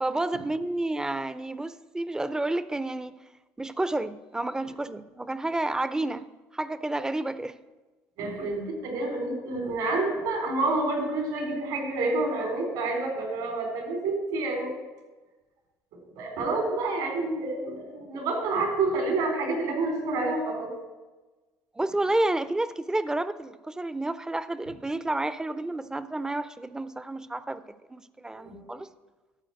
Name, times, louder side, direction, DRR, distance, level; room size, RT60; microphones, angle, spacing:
voice 1, 0.0-3.1 3.6-6.2 6.5-7.5 21.8-27.6 27.9-28.9, right 2 dB, 10° right, 0.5 m, -30 dB
voice 2, 8.2-14.7 16.1-20.7 28.4-28.6, right 2 dB, 80° right, 3.8 m, -28 dB
12.0 x 4.4 x 7.8 m
supercardioid pair, 95°, 7 cm